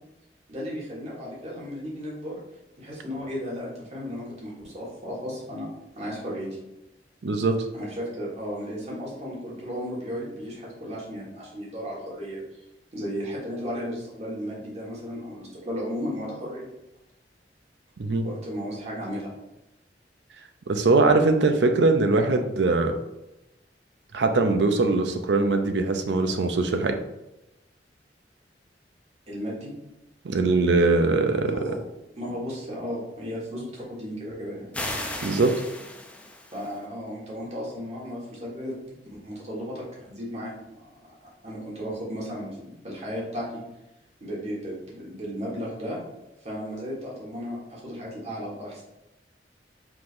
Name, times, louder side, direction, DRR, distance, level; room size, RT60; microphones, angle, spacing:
voice 1, 0.5-2.3 2.8-5.7 5.9-6.5 7.7-12.4 12.9-16.7 18.2-19.3 29.3-29.7 31.4-31.8 32.1-34.7 36.5-38.7 39.1-40.9 41.2-43.6 44.2-46.0 46.4-48.8, equal, 40° right, -5 dB, 1.5 m, -34 dB
voice 2, 7.2-7.6 18.0-18.3 20.7-22.9 24.1-27.0 30.2-31.7 35.2-35.5, right 3 dB, 80° right, 6 dB, 0.5 m, -21 dB
sound 1, 34.7-36.8, left 1 dB, 5° left, 0.4 m, -35 dB
4.8 x 3.7 x 2.6 m, 0.92 s
head